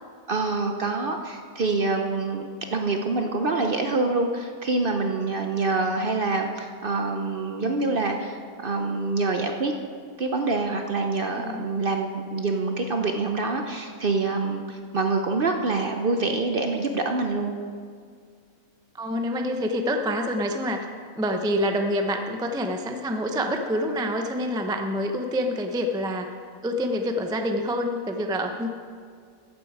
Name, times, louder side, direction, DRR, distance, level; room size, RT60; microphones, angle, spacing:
voice 1, 0.3-2.4 2.7-9.7 10.2-17.5, right 3 dB, 50° right, 4 dB, 0.7 m, -26 dB
voice 2, 11.3-11.6 18.9-20.9 21.2-26.3 26.6-28.7, equal, 5° right, 4 dB, 0.4 m, -27 dB
14.5 x 8.2 x 4.8 m, 2.1 s
omnidirectional pair, 1.5 m